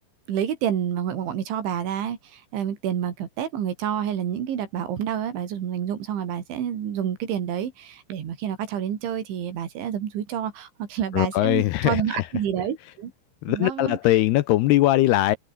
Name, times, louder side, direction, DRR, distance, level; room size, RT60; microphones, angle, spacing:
voice 1, 0.3-13.1 13.5-14.0, right 9 dB, 80° right, 5.4 m, -28 dB
voice 2, 11.1-12.3 13.4-15.4, left 15 dB, 75° left, 2.6 m, -21 dB
omnidirectional pair, 5.3 m